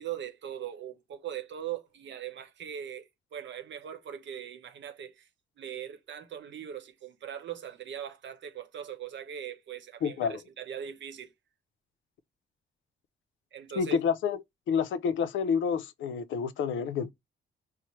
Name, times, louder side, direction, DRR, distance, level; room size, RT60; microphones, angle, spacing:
voice 1, 0.0-5.3 5.6-11.3 13.5-14.0, right 9 dB, 70° right, 0.9 m, -40 dB
voice 2, 10.0-10.4 13.8-14.4 14.7-17.1, left 6 dB, 80° left, 0.5 m, -28 dB
4.4 x 2.1 x 3.0 m
cardioid pair, 85°, 20 cm